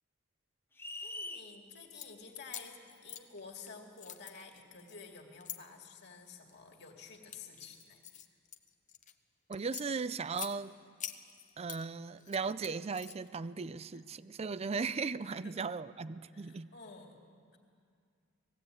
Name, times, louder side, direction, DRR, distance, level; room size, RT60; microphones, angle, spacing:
sound 1, 0.8-1.5, left 2 dB, 10° left, 0.6 m, -42 dB
voice 1, 1.0-8.0 13.9-14.0 15.4-15.6 16.3-17.2, left 4 dB, 60° left, 1 dB, 2.3 m, -51 dB
sound 2, 1.8-2.1 2.5-3.7 4.0-5.6 6.2-6.6 7.0-9.1 9.5-10.5 11.0-11.8 12.2-13.4, left 10 dB, 40° left, 0.9 m, -45 dB
voice 2, 9.5-10.7 11.6-16.7, right 4 dB, 30° right, 16 dB, 0.4 m, -37 dB
19.5 x 15.5 x 8.9 m, 2.2 s
head